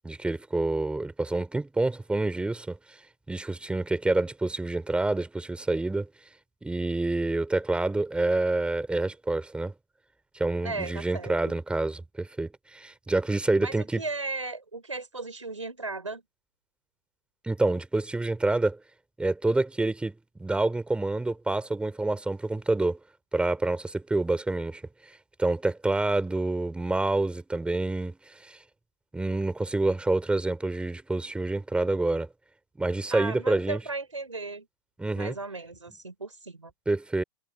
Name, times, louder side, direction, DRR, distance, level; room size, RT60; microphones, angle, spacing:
voice 1, 0.0-2.8 3.3-6.1 6.6-9.7 10.3-14.0 17.4-18.8 19.2-23.0 23.3-24.8 25.4-28.6 29.1-32.3 32.8-33.8 35.0-35.3 36.9-37.2, right 2 dB, 5° right, 3.8 m, -27 dB
voice 2, 10.6-11.3 13.6-16.2 33.1-34.7 35.2-36.7, right 3 dB, 90° right, 5.4 m, -36 dB
figure-of-eight pair, 100°, 16 cm